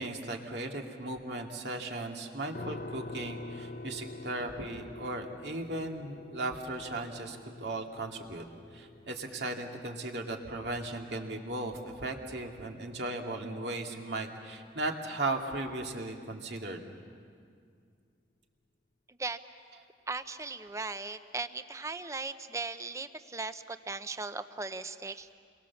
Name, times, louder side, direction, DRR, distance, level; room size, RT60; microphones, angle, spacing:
voice 1, 0.0-8.4 8.7-16.9, right 2 dB, 75° right, 2 dB, 2.3 m, -37 dB
sound 1, 2.5-15.4, left 2 dB, 50° left, 0.8 m, -48 dB
voice 2, 19.1-19.4 20.1-25.3, right 3 dB, 15° right, 11 dB, 0.7 m, -38 dB
30.0 x 23.0 x 7.2 m, 2.2 s
head